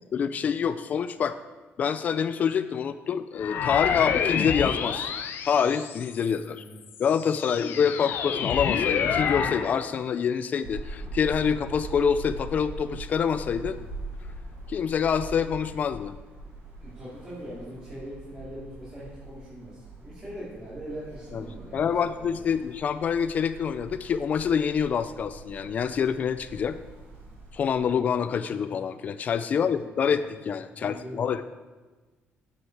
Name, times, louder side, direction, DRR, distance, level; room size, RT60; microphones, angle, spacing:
voice 1, 0.1-1.4 1.8-5.1 5.4-6.6 7.0-13.8 14.7-16.2 21.3-21.4 21.7-26.8 27.5-31.5, left 7 dB, 40° left, 11 dB, 0.4 m, -26 dB
sound 1, 3.4-6.3 6.9-9.7, left 7 dB, 60° left, 0.9 m, -28 dB
voice 2, 7.5-7.9 16.8-22.4 29.5-29.8 30.1-30.3 30.7-31.3, equal, 20° right, -10 dB, 3.1 m, -42 dB
sound 2, 10.6-27.7, right 2 dB, 75° right, 3.1 m, -42 dB
12.5 x 9.4 x 4.8 m, 1.3 s
cardioid pair, 170°, 4 cm